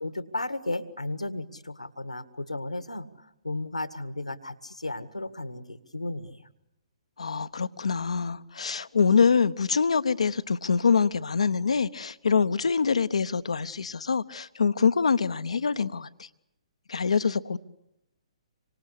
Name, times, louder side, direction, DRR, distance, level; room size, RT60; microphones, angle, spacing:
voice 1, 0.0-6.5, left 2 dB, 85° left, 12 dB, 1.9 m, -34 dB
voice 2, 7.2-16.3 16.9-17.6, left 5 dB, 65° left, 13 dB, 1.0 m, -25 dB
27.0 x 25.0 x 8.4 m, 0.87 s
figure-of-eight pair, 125°, 3 cm